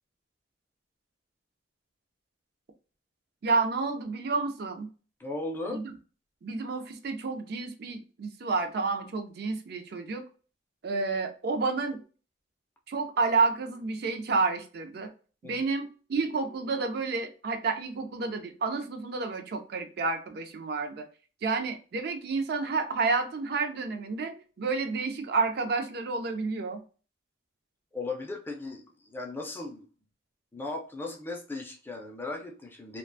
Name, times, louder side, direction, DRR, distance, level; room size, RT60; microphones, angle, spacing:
voice 1, 3.4-4.9 5.7-5.9 6.4-10.2 10.8-12.0 12.9-15.1 15.4-21.0 21.4-26.8, right 4 dB, 55° right, 7 dB, 0.4 m, -30 dB
voice 2, 5.2-5.8 15.4-15.6 27.9-29.9 30.5-33.0, left 2 dB, 10° left, 1 dB, 0.4 m, -37 dB
2.3 x 2.2 x 2.5 m, 0.37 s
head